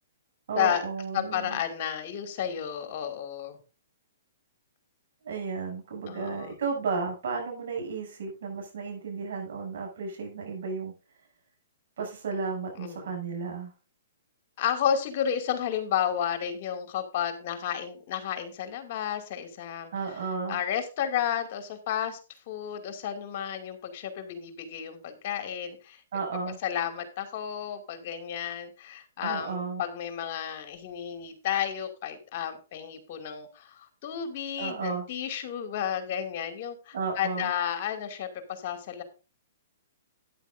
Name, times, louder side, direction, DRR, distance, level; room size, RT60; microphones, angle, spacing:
voice 1, 0.5-1.6 5.2-10.9 12.0-13.7 19.9-20.6 26.1-26.6 29.2-29.8 34.6-35.1 36.9-37.5, right 5 dB, 65° right, 2 dB, 7.3 m, -33 dB
voice 2, 1.1-3.6 6.1-6.5 12.8-13.2 14.6-19.9 20.5-22.2 22.5-26.0 26.6-39.0, left 9 dB, 50° left, 7 dB, 2.3 m, -32 dB
13.0 x 9.9 x 2.6 m, 0.32 s
hypercardioid pair, 135°, 0 cm